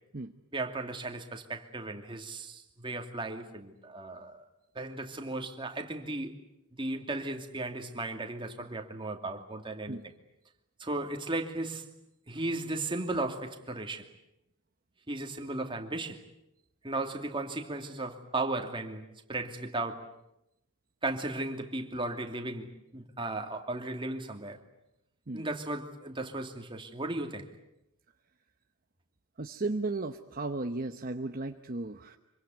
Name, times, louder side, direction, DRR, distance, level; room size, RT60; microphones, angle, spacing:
voice 1, 0.5-4.4 4.7-6.3 6.8-10.0 10.8-11.8 12.3-14.1 15.1-16.2 16.8-20.1 21.0-24.6 25.3-27.5, right 2 dB, 25° right, 2.6 m, -36 dB
voice 2, 29.4-32.2, right 2 dB, 40° right, 1.0 m, -35 dB
26.0 x 24.5 x 9.3 m
head